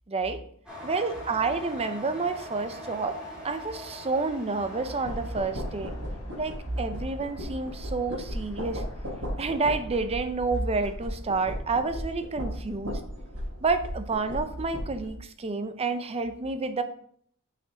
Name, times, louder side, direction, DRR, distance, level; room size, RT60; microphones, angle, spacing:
voice 1, 0.1-0.4 0.8-3.2 3.4-5.9 6.4-8.8 9.4-13.0 13.6-16.8, right 3 dB, 25° right, 10 dB, 0.5 m, -29 dB
sound 1, 0.6-6.0, left 1 dB, 5° right, 2.4 m, -42 dB
sound 2, 4.5-12.5, left 1 dB, 85° left, 1.5 m, -50 dB
sound 3, 5.0-15.1, equal, 80° right, 3.1 m, -36 dB
6.0 x 5.9 x 3.8 m, 0.65 s
head